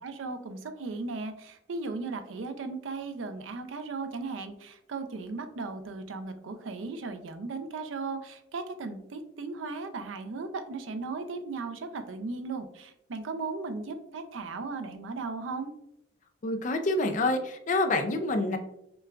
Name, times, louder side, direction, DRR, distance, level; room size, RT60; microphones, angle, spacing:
voice 1, 0.0-15.7, right 3 dB, 90° right, 8 dB, 0.5 m, -36 dB
voice 2, 16.4-18.6, left 2 dB, 40° left, 6 dB, 0.4 m, -27 dB
6.0 x 2.3 x 2.4 m, 0.78 s
head